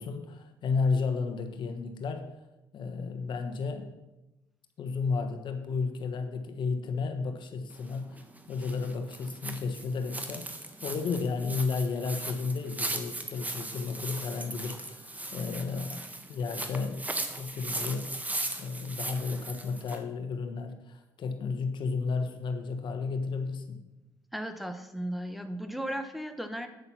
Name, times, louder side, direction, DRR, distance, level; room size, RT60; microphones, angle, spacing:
voice 1, 0.0-2.3 2.7-3.9 4.8-16.0 16.3-17.0 17.4-18.1 18.6-23.8, left 4 dB, 65° left, 7 dB, 1.3 m, -33 dB
sound 1, 7.7-20.0, right 2 dB, 15° right, 1.4 m, -38 dB
voice 2, 24.3-26.7, equal, ahead, 6 dB, 1.2 m, -35 dB
9.2 x 6.8 x 5.8 m, 0.99 s
supercardioid pair, 60°, 9 cm